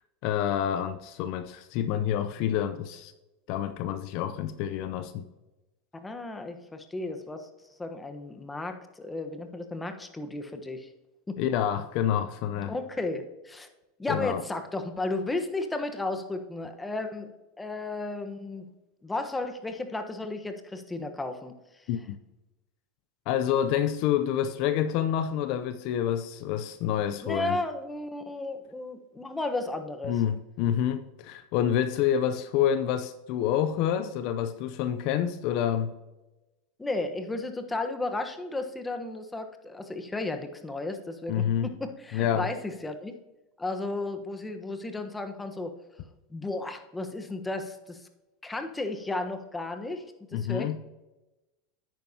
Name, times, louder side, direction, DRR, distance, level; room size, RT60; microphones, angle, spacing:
voice 1, 0.2-3.1 3.5-5.2 11.4-12.7 14.1-14.4 21.9-22.2 23.3-27.6 30.1-36.0 41.3-41.7 42.1-42.5 50.3-50.8, left 10 dB, 60° left, 11 dB, 0.6 m, -28 dB
voice 2, 6.0-7.5 7.8-10.9 11.3-11.4 12.6-13.7 14.0-17.3 17.6-18.7 19.0-21.5 27.2-30.1 36.8-43.1 43.6-45.7 46.3-48.0 48.4-50.0 50.3-50.8, left 2 dB, 10° left, 6 dB, 1.1 m, -34 dB
10.5 x 9.1 x 2.8 m, 1.0 s
hypercardioid pair, 100°, 0 cm